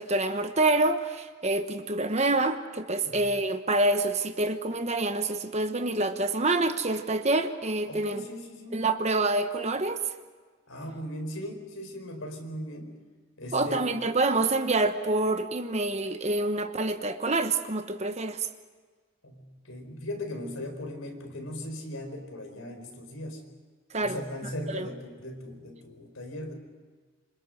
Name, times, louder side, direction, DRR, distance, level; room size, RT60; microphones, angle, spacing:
voice 1, 0.0-8.2 8.7-10.1 13.5-18.5 23.9-24.2 24.7-24.9, right 2 dB, 30° right, 9 dB, 1.1 m, -27 dB
voice 2, 3.0-3.3 7.9-8.9 10.7-13.0 13.4-13.9 19.2-23.4 24.0-26.5, left 1 dB, 80° left, 4 dB, 4.7 m, -38 dB
27.5 x 25.5 x 6.5 m, 1.4 s
head